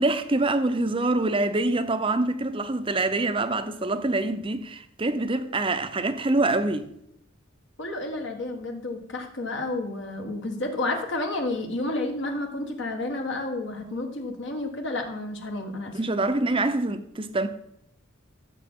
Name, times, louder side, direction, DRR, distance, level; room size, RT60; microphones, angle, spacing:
voice 1, 0.0-6.9 15.9-17.5, right 2 dB, 25° right, 0.6 m, -25 dB
voice 2, 7.8-16.0, left 2 dB, 60° left, 1.4 m, -31 dB
14.5 x 6.9 x 3.7 m
head